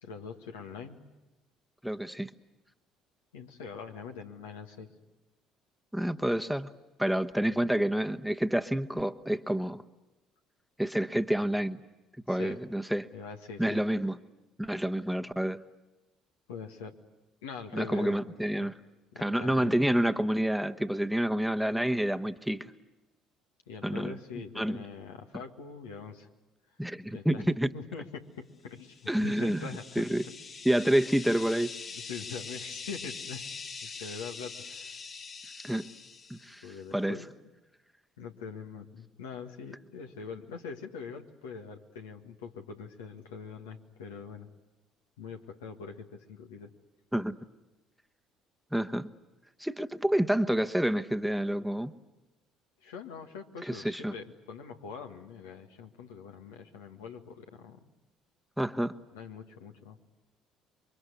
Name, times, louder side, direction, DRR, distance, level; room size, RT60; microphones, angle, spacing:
voice 1, 0.0-1.0 3.3-4.9 12.3-12.6 13.1-13.8 16.5-17.0 17.4-18.7 19.1-19.8 23.7-26.3 27.1-27.5 27.7-30.1 31.9-33.5 33.8-35.0 36.6-37.3 38.2-44.5 45.2-46.7 52.8-57.9 59.1-60.0, left 5 dB, 90° left, 3 dB, 1.8 m, -43 dB
voice 2, 1.8-2.3 5.9-6.7 7.0-9.8 10.8-11.8 12.3-13.1 13.6-14.2 14.6-15.6 17.7-18.7 19.2-22.7 23.8-24.2 24.6-24.8 26.8-27.7 29.1-29.6 30.0-30.2 30.6-31.7 35.6-35.9 36.3-36.6 36.9-37.2 47.1-47.4 48.7-49.1 49.6-51.9 53.7-54.1 58.6-58.9, right 1 dB, ahead, 9 dB, 1.1 m, -28 dB
sound 1, 28.9-36.7, left 5 dB, 45° left, 2.0 m, -43 dB
28.5 x 23.5 x 8.3 m, 1.0 s
hypercardioid pair, 65°, 0 cm